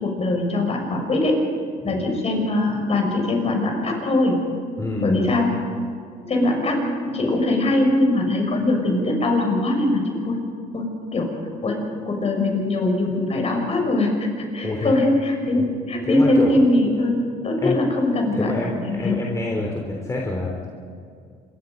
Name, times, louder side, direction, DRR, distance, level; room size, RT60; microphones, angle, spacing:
voice 1, 0.0-1.4 1.8-4.4 5.0-5.6 6.2-10.4 10.7-11.4 11.6-17.2 17.4-19.2, left 2 dB, 40° left, 2 dB, 6.3 m, -22 dB
voice 2, 4.8-5.3 14.6-15.0 16.0-16.6 17.6-17.8 18.3-20.7, left 2 dB, 20° left, -1 dB, 3.5 m, -26 dB
26.5 x 23.0 x 5.4 m, 2.3 s
cardioid pair, 110°, 17 cm